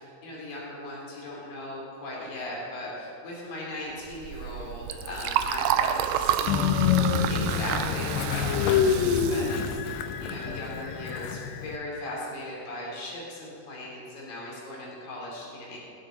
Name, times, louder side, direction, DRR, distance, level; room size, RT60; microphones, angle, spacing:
voice 1, 0.2-15.8, left 1 dB, 55° left, -4 dB, 4.6 m, -38 dB
Liquid, 4.1-10.8, right 10 dB, 85° right, 2.7 m, -30 dB
Train, 6.5-11.8, left 7 dB, 80° left, 2.6 m, -26 dB
24.0 x 8.3 x 3.9 m, 2.7 s
omnidirectional pair, 4.8 m